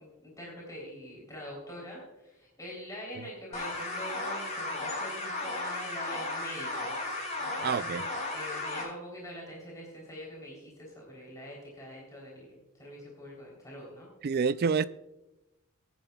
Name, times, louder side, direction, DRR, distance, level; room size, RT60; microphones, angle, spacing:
voice 1, 0.0-8.0 8.3-14.1, equal, 15° left, 3.4 m, -44 dB
sound 1, 3.5-8.8, left 2 dB, 35° left, 4.4 m, -35 dB
voice 2, 7.6-8.1 14.2-14.8, right 5 dB, 45° right, 0.3 m, -27 dB
21.0 x 10.5 x 2.3 m
head